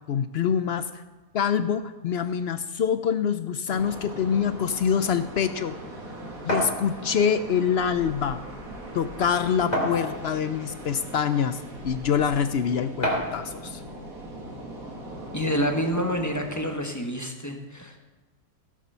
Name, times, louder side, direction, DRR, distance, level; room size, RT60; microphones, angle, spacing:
voice 1, 0.1-1.0 1.3-5.8 6.4-8.4 8.9-13.8, left 7 dB, 60° left, 11 dB, 0.7 m, -25 dB
sound 1, 3.7-16.7, right 1 dB, 85° right, 2.5 m, -40 dB
sound 2, 6.5-6.8 7.9-8.0 8.4-8.5 9.7-10.4 11.2-11.3 13.0-13.4, equal, 30° left, 3.0 m, -26 dB
voice 2, 15.3-18.0, equal, 15° left, 3 dB, 1.2 m, -28 dB
16.5 x 7.5 x 5.6 m, 1.2 s
omnidirectional pair, 1.4 m